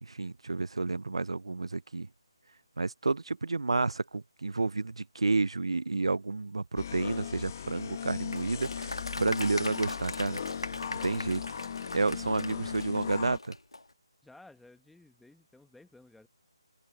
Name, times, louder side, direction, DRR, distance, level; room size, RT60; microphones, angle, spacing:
voice 1, 0.0-2.1 2.8-10.4 10.9-11.4 11.9-13.6, right 3 dB, 80° right, 0.3 m, -30 dB
sound 1, 6.8-13.4, left 8 dB, 40° left, 1.3 m, -38 dB
Applause, 8.3-13.8, left 2 dB, 90° left, 2.1 m, -40 dB
voice 2, 14.2-16.3, left 2 dB, ahead, 1.3 m, -55 dB
open air
figure-of-eight pair, 155°, 3 cm